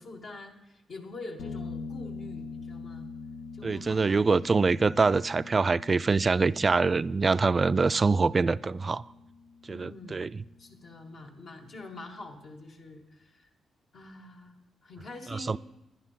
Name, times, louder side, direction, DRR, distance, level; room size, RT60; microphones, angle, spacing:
voice 1, 0.0-3.1 3.5-4.1 9.7-10.2 10.6-13.5 13.9-15.6, left 2 dB, 60° left, 2.0 m, -45 dB
sound 1, 1.4-10.9, left 4 dB, 85° left, 0.9 m, -44 dB
voice 2, 3.6-9.0 9.7-10.3 15.5-15.6, right 4 dB, 35° right, 0.3 m, -24 dB
11.0 x 10.5 x 5.8 m
cardioid pair, 75°, 0 cm